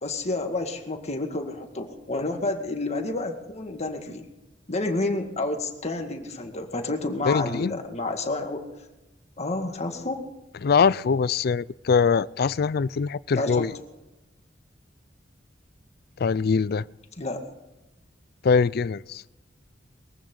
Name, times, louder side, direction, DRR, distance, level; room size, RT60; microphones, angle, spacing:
voice 1, 0.0-4.3 4.7-8.7 9.4-10.2 13.3-13.7 17.2-17.4, left 2 dB, 35° left, 1.9 m, -29 dB
voice 2, 7.2-7.8 10.6-13.7 16.2-16.8 18.4-19.2, left 5 dB, 55° left, 0.4 m, -22 dB
22.0 x 15.0 x 3.9 m
head